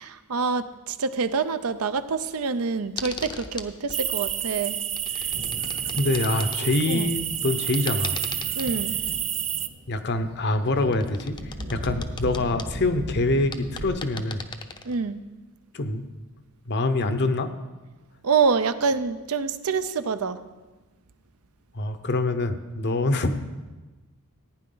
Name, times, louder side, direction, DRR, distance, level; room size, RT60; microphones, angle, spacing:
voice 1, 0.0-4.8 6.9-7.1 8.6-9.0 14.8-15.2 18.2-20.4, right 5 dB, 70° right, 11 dB, 0.6 m, -26 dB
sound 1, 3.0-4.4 4.7-6.6 7.7-9.2 10.8-12.7 13.2-13.3 13.5-15.1 17.3-17.4, left 4 dB, 20° left, 0.6 m, -39 dB
sound 2, 3.9-9.7, right 9 dB, 30° right, 0.4 m, -29 dB
Thunder, 4.1-13.9, equal, 50° right, 1.5 m, -39 dB
voice 2, 6.0-8.2 9.9-11.4 11.7-14.4 15.7-16.0 16.7-17.5 21.7-23.4, left 2 dB, 50° left, 9 dB, 0.8 m, -25 dB
15.0 x 9.6 x 3.9 m, 1.2 s
head